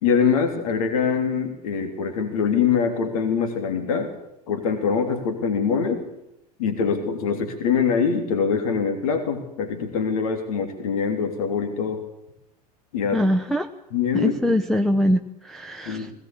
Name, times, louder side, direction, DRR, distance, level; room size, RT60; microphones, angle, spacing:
voice 1, 0.0-4.1 4.5-6.0 6.6-12.0 12.9-13.2 13.9-14.6 15.9-16.1, left 6 dB, 60° left, 6 dB, 3.5 m, -23 dB
voice 2, 13.1-13.7 14.1-16.1, equal, ahead, 2 dB, 1.1 m, -23 dB
21.0 x 18.0 x 8.7 m, 0.84 s
figure-of-eight pair, 80°, 20 cm